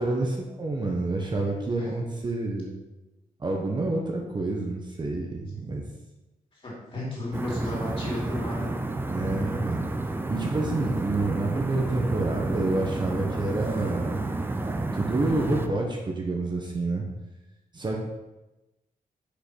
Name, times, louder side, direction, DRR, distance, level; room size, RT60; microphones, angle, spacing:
voice 1, 0.0-2.8 3.4-5.8 9.1-9.9 10.3-14.2 14.6-17.0 17.7-18.0, right 2 dB, 30° right, 0 dB, 1.0 m, -28 dB
voice 2, 6.5-8.7, left 1 dB, 35° left, -5 dB, 3.1 m, -34 dB
sound 1, 7.3-15.7, right 2 dB, 15° right, 0.5 m, -30 dB
6.8 x 5.7 x 5.7 m, 1.0 s
wide cardioid pair, 180°, 15 cm